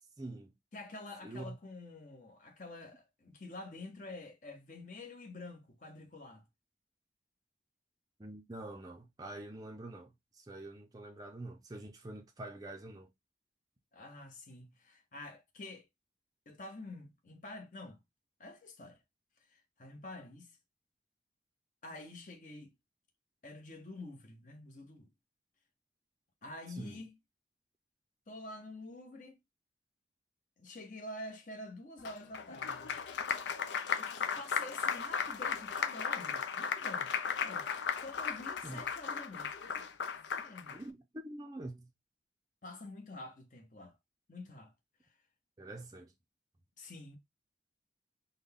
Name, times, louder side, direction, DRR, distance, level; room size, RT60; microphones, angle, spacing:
voice 1, 0.2-0.5 1.2-1.6 8.2-13.1 26.7-27.1 38.6-38.8 40.7-41.9 45.6-46.1, right 2 dB, 20° right, 0.5 m, -46 dB
voice 2, 0.7-6.5 13.9-15.8 16.5-18.0 18.4-19.0 19.5-20.5 21.8-22.7 23.4-25.1 26.4-27.1 28.3-29.4 30.6-33.0 34.0-37.1 37.4-37.7 38.0-40.8 42.6-44.0 44.3-44.7 46.8-47.2, left 2 dB, 45° left, 0.9 m, -48 dB
Applause, 32.0-40.8, left 6 dB, 85° left, 0.5 m, -36 dB
3.8 x 2.2 x 3.4 m
head